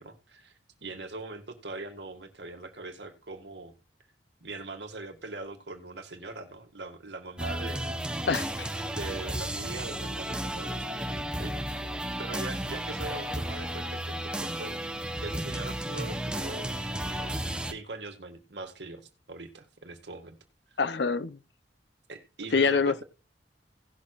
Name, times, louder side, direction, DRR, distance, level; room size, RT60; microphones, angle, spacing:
voice 1, 0.0-3.8 4.4-8.0 8.9-11.6 12.2-14.8 15.2-16.8 17.1-20.4 20.7-20.8 22.1-23.0, right 2 dB, 70° right, 1.8 m, -41 dB
sound 1, 7.4-17.7, right 1 dB, 5° right, 0.8 m, -33 dB
voice 2, 8.3-8.7 20.8-21.4 22.5-23.0, left 4 dB, 70° left, 0.6 m, -26 dB
18.0 x 6.4 x 2.4 m
head